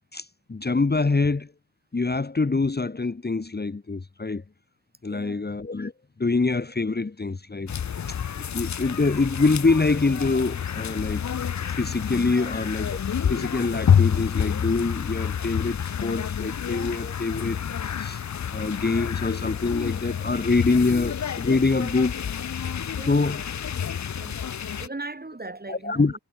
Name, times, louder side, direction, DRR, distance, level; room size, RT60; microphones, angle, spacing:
voice 1, 0.1-1.5 1.9-4.4 5.0-5.9 6.2-7.7 8.1-8.2 8.5-11.2 11.7-17.6 18.0-18.2 18.5-22.2 23.1-23.4 25.7-26.2, left 3 dB, 25° left, 1.4 m, -25 dB
voice 2, 5.1-5.4 12.3-12.6 23.0-23.2 23.7-24.5 24.8-26.2, right 2 dB, 20° right, 6.8 m, -39 dB
sound 1, 7.7-24.9, left 8 dB, 40° left, 0.8 m, -28 dB
cardioid pair, 85°, 41 cm